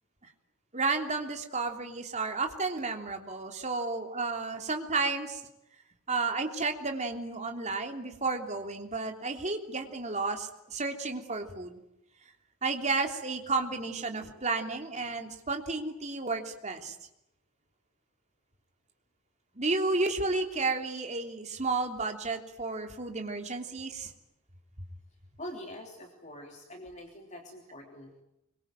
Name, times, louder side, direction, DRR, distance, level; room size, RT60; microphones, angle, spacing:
voice 1, 0.7-5.4 6.1-11.8 12.6-16.9 19.5-24.1, right 3 dB, 30° right, 4 dB, 3.2 m, -32 dB
voice 2, 25.4-28.2, left 1 dB, 35° left, 2 dB, 3.2 m, -44 dB
25.5 x 23.5 x 9.1 m, 0.84 s
head